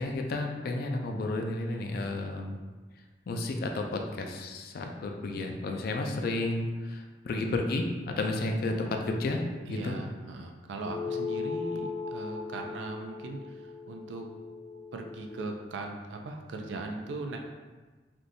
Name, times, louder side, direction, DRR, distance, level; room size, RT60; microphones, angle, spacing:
voice 1, 0.0-2.6 3.3-9.4 9.7-10.0, left 2 dB, 55° left, 3 dB, 0.3 m, -32 dB
voice 2, 9.7-14.3 14.9-17.4, right 3 dB, 85° right, 3 dB, 0.4 m, -39 dB
sound 1, 10.8-15.6, left 4 dB, 15° left, 0.6 m, -38 dB
3.4 x 2.6 x 2.5 m, 1.3 s
head